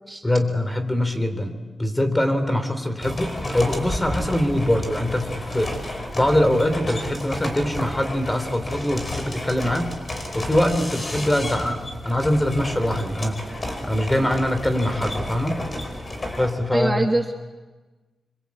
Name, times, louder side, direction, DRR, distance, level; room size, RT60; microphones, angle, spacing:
voice 1, 0.2-9.9 10.3-13.4 13.8-15.6 16.4-17.1, left 1 dB, 15° left, 8 dB, 3.3 m, -23 dB
sound 1, 3.0-16.5, left 1 dB, 30° left, 5.0 m, -32 dB
voice 2, 16.7-17.4, right 2 dB, 20° right, 3 dB, 1.5 m, -23 dB
26.5 x 26.0 x 8.5 m, 1.3 s
wide cardioid pair, 100°, 0 cm